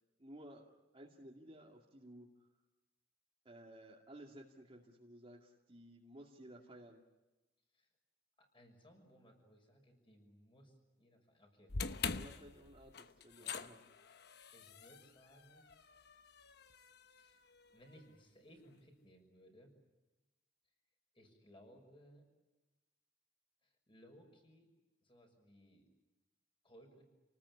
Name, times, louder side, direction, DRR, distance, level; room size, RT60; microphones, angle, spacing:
voice 1, 0.2-2.5 3.4-7.0 12.1-13.0 13.2-13.8, right 1 dB, 30° right, -2 dB, 2.4 m, -56 dB
voice 2, 8.4-12.5 13.4-13.6 14.5-15.9 17.2-17.4 17.7-19.7 20.6-20.7 21.1-22.3 23.6-24.7 25.0-25.9 26.6-27.0, equal, 30° left, 4 dB, 6.3 m, -63 dB
sound 1, 11.7-18.0, left 5 dB, 60° left, 1.0 m, -45 dB
28.5 x 19.5 x 9.9 m, 1.1 s
head